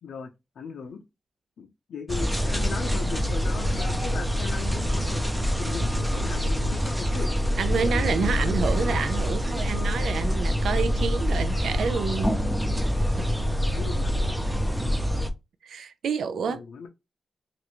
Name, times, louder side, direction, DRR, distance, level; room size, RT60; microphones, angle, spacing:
voice 1, 0.0-1.0 1.6-7.3 7.7-9.1 12.4-12.5 13.6-14.2 16.4-16.9, left 6 dB, 85° left, 0.5 m, -38 dB
sound 1, 2.1-15.3, equal, 5° right, 0.5 m, -25 dB
voice 2, 7.6-12.4 15.6-16.6, right 6 dB, 85° right, 0.4 m, -28 dB
3.1 x 2.5 x 2.9 m
cardioid pair, 80°, 0 cm